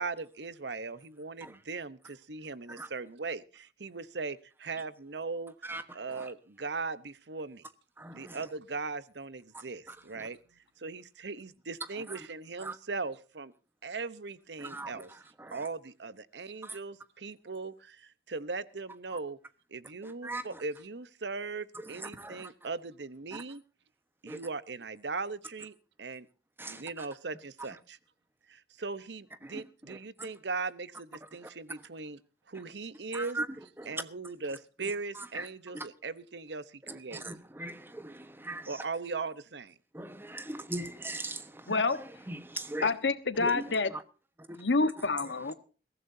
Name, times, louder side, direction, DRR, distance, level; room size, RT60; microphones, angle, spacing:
voice 1, 0.0-5.5 5.9-7.6 8.1-13.5 13.8-15.1 15.5-19.4 19.7-23.6 24.2-26.3 26.6-28.0 28.5-32.2 32.5-33.4 33.9-37.4 38.7-39.8, right 4 dB, 75° right, 1.0 m, -39 dB
voice 2, 5.6-6.3 8.0-8.4 9.9-10.3 12.1-12.2 12.6-12.8 14.6-15.6 16.6-16.8 20.0-20.6 21.9-22.5 23.3-23.4 24.3-24.4 26.6-27.1 29.4-30.3 31.4-31.5 33.1-33.5 33.8-34.0 34.8-35.5 35.7-35.9 36.9-38.8 39.9-42.9 43.4-44.0 44.4-44.6, right 2 dB, 15° right, 1.2 m, -41 dB
voice 3, 41.7-42.0 42.8-43.9 44.5-45.5, left 3 dB, 90° left, 1.3 m, -28 dB
22.0 x 15.5 x 2.7 m
head